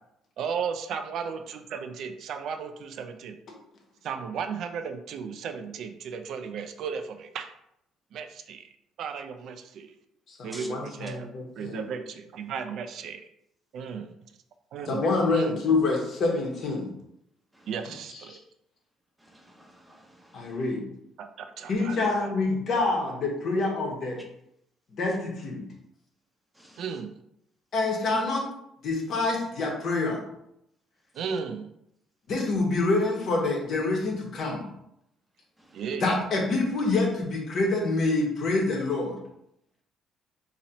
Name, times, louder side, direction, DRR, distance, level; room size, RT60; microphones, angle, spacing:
voice 1, 0.4-3.3 4.0-7.5 8.1-8.7 9.0-9.9 10.4-11.3 11.6-12.0 12.4-13.2 13.7-14.1 14.7-15.0 15.3-15.5 17.7-18.3 21.2-21.3 21.6-22.3 26.8-27.1 31.2-31.7 35.7-36.1, right 6 dB, 65° right, 8 dB, 0.4 m, -35 dB
voice 2, 10.3-11.8 14.9-16.9 18.1-18.4 20.3-20.8 21.7-24.2 24.9-25.6 27.7-28.5 28.8-30.2 32.3-34.6 35.9-39.2, left 3 dB, 55° left, 0 dB, 1.1 m, -26 dB
voice 3, 19.2-20.5 26.6-26.8 35.7-35.8, equal, 5° right, 1 dB, 0.7 m, -49 dB
2.9 x 2.9 x 3.9 m, 0.77 s
cardioid pair, 115°, 0 cm